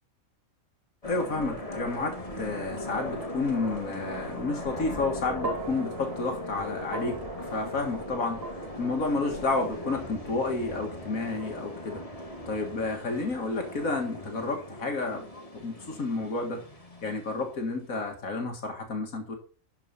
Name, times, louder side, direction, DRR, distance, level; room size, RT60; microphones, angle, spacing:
voice 1, 1.0-8.4 8.8-12.0 12.5-15.3 15.5-16.6 17.0-19.4, left 3 dB, 90° left, 3 dB, 2.3 m, -31 dB
sound 1, 1.0-17.9, left 1 dB, 25° left, 2.2 m, -39 dB
sound 2, 5.4-13.8, right 4 dB, 45° right, 1.4 m, -42 dB
12.5 x 5.1 x 5.5 m, 0.38 s
omnidirectional pair, 1.4 m